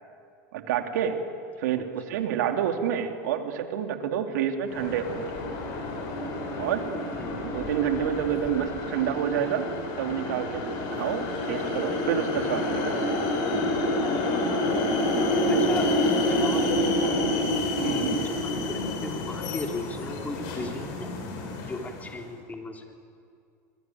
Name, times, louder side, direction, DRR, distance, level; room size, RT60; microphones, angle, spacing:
voice 1, 0.5-1.2 1.6-5.5 6.6-6.8 7.4-9.7 10.0-13.1 15.4-15.8 17.8-18.2, right 9 dB, 80° right, 5 dB, 2.9 m, -29 dB
sound 1, 4.7-22.2, left 1 dB, 60° left, 7.9 m, -28 dB
voice 2, 15.5-17.2 17.8-21.3 21.6-22.8, left 2 dB, 15° left, 3 dB, 3.8 m, -36 dB
26.5 x 22.0 x 9.4 m, 2.4 s
supercardioid pair, 110°, 9 cm